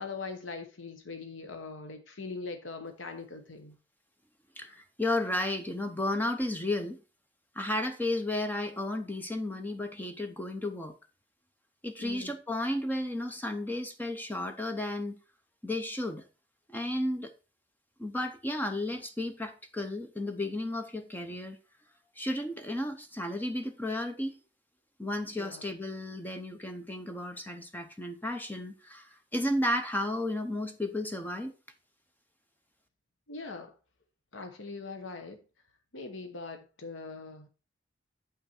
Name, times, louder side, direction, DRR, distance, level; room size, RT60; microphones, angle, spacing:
voice 1, 0.0-3.8 12.0-12.3 25.4-25.7 33.3-33.7 34.3-35.4 35.9-37.5, left 3 dB, 85° left, 1.0 m, -41 dB
voice 2, 4.6-7.0 7.6-10.9 11.8-15.2 15.6-16.2 16.7-17.3 18.0-21.6 22.2-24.3 25.0-31.5, left 1 dB, 10° left, 0.7 m, -33 dB
8.4 x 5.7 x 4.3 m
head